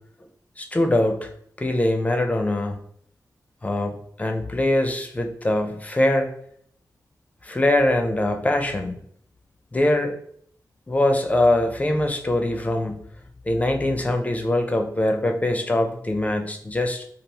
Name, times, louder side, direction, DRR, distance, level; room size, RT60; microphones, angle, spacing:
voice 1, 0.6-1.3 1.6-2.8 3.6-6.3 7.4-9.0 9.7-10.1 10.9-13.0 13.5-17.0, left 1 dB, 20° left, 4 dB, 0.4 m, -22 dB
3.3 x 2.4 x 2.7 m, 0.64 s
wide cardioid pair, 120°, 7 cm